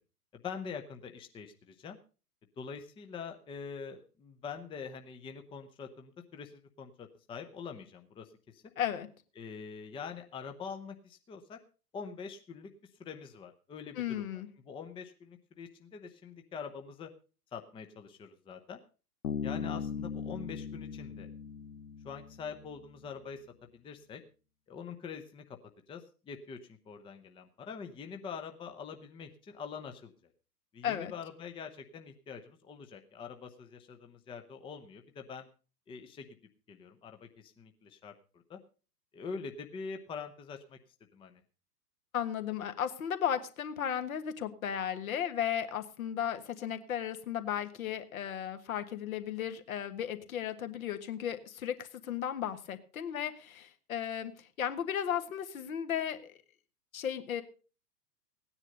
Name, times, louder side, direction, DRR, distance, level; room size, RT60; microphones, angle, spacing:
voice 1, 0.3-2.0 2.6-8.6 9.4-11.6 11.9-12.7 13.0-17.1 17.5-18.8 19.4-21.3 22.0-23.4 23.7-24.2 24.7-25.4 25.9-26.6 26.9-30.1 30.7-35.5 35.9-36.3 36.7-38.6 39.1-40.8 41.1-41.4, left 6 dB, 10° left, 6 dB, 0.8 m, -44 dB
voice 2, 8.8-9.1 14.0-14.5 30.8-31.1 42.1-56.3 56.9-57.4, left 9 dB, 60° left, 9 dB, 1.7 m, -35 dB
Bass guitar, 19.2-22.8, left 6 dB, 80° left, 0.8 m, -39 dB
16.5 x 9.9 x 5.3 m, 0.36 s
figure-of-eight pair, 100°, 48 cm